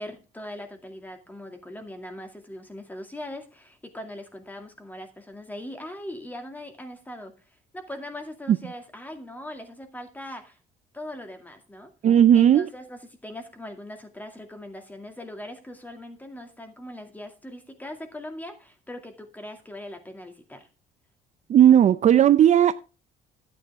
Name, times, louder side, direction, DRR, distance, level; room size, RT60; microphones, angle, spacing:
voice 1, 0.0-10.6 10.9-11.9 12.3-20.7, left 1 dB, 10° left, 2.2 m, -40 dB
voice 2, 12.0-12.7 21.5-22.7, right 10 dB, 45° right, 0.5 m, -16 dB
11.5 x 8.9 x 3.5 m
cardioid pair, 110°, 17 cm